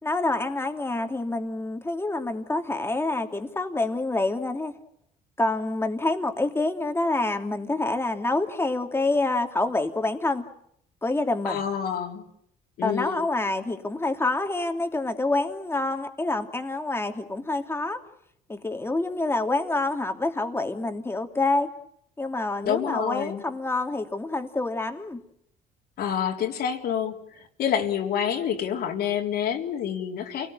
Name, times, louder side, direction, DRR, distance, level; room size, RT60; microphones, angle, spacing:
voice 1, 0.0-4.7 5.4-10.5 11.0-11.6 12.8-18.0 18.5-21.7 22.2-25.2, left 2 dB, 15° left, 5 dB, 2.8 m, -27 dB
voice 2, 11.5-12.2 12.8-13.2 22.6-23.4 26.0-30.5, left 8 dB, 70° left, 2 dB, 3.5 m, -28 dB
28.5 x 19.0 x 9.0 m, 0.73 s
cardioid pair, 110°, 17 cm